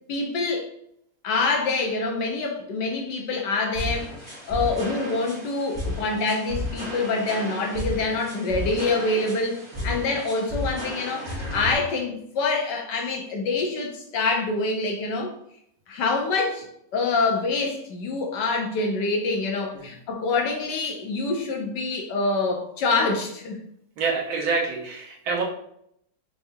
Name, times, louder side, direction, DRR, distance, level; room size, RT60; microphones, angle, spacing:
voice 1, 0.1-0.7 1.2-15.3 15.9-16.7 16.9-23.6, left 3 dB, 70° left, 1 dB, 1.1 m, -26 dB
sound 1, 3.7-11.7, left 1 dB, 15° right, 1.3 m, -33 dB
voice 2, 24.0-25.4, right 4 dB, 70° right, -2 dB, 1.7 m, -27 dB
4.6 x 3.3 x 2.6 m, 0.73 s
omnidirectional pair, 2.3 m